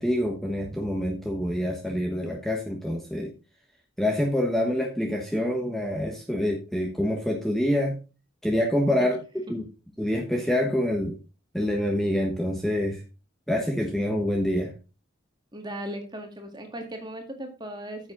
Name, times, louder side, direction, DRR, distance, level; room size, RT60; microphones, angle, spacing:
voice 1, 0.0-3.3 4.0-8.0 8.4-9.2 9.5-9.6 10.0-11.1 11.5-13.0 13.5-14.7, left 1 dB, ahead, 0 dB, 1.1 m, -26 dB
voice 2, 15.5-18.1, right 1 dB, 20° right, 4 dB, 1.9 m, -37 dB
9.3 x 7.4 x 3.9 m, 0.31 s
head